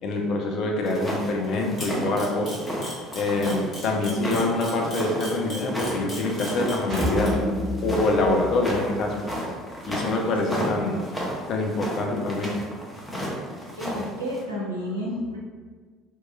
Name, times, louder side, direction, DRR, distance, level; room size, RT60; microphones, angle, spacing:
voice 1, 0.0-2.6 3.1-7.3 7.8-9.2 9.9-11.0 11.5-12.5, left 2 dB, 50° left, 1 dB, 0.4 m, -25 dB
sound 1, 0.9-14.4, equal, 5° left, 0.6 m, -33 dB
Camera, 1.8-7.3, left 1 dB, 35° left, 1.2 m, -37 dB
sound 2, 6.9-9.3, equal, 40° right, 0.9 m, -28 dB
voice 2, 10.2-11.0 13.8-15.4, equal, 85° right, -6 dB, 0.5 m, -32 dB
2.9 x 2.3 x 2.3 m, 1.5 s
figure-of-eight pair, 60°, 0 cm